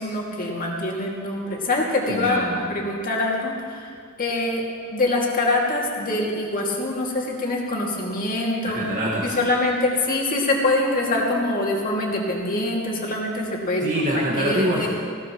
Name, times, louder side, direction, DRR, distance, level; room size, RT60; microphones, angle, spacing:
voice 1, 0.0-2.4 2.7-4.6 4.9-8.8 9.2-14.0 14.4-14.9, left 2 dB, 40° left, -2 dB, 2.4 m, -24 dB
voice 2, 2.1-2.6 8.6-9.4 13.8-14.9, right 1 dB, 35° right, -5 dB, 1.8 m, -25 dB
19.0 x 17.0 x 3.1 m, 2.1 s
head